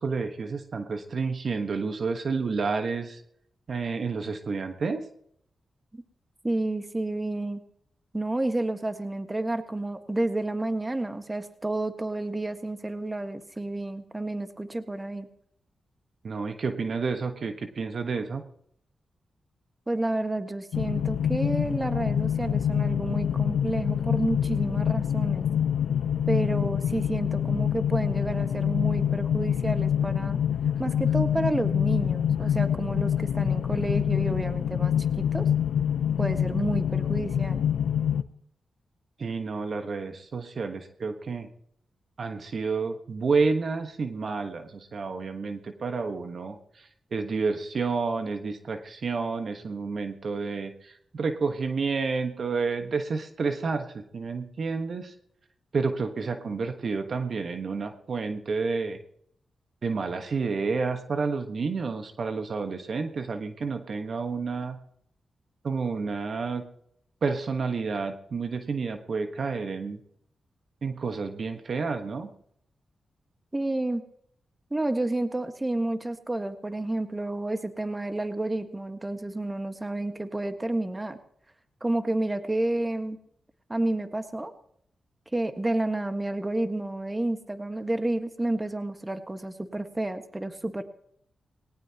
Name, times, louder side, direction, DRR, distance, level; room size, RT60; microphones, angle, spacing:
voice 1, 0.0-3.2 3.7-5.0 16.2-18.4 39.2-41.5 42.2-55.1 55.7-59.0 59.8-64.8 65.6-66.6 67.2-70.0 70.8-72.3, right 4 dB, 65° right, 6 dB, 1.3 m, -30 dB
voice 2, 6.4-7.6 8.1-15.3 19.9-25.5 26.3-30.4 30.8-35.5 36.2-37.6 73.5-74.0 74.7-81.2 81.8-83.2 83.7-84.5 85.3-90.8, right 2 dB, 25° right, 8 dB, 1.5 m, -30 dB
sound 1, 20.7-38.2, left 9 dB, 85° left, 0.6 m, -26 dB
19.0 x 18.5 x 2.9 m, 0.69 s
supercardioid pair, 45°, 0 cm